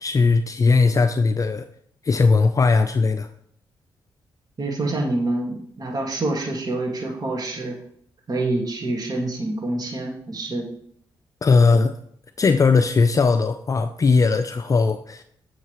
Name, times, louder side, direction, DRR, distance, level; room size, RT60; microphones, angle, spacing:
voice 1, 0.0-1.7 2.0-3.3 11.4-11.9 12.4-15.2, left 4 dB, 40° left, 8 dB, 0.5 m, -18 dB
voice 2, 4.6-7.8 8.3-10.7, right 2 dB, 45° right, 0 dB, 1.9 m, -26 dB
8.3 x 6.5 x 3.1 m, 0.67 s
supercardioid pair, 60°, 9 cm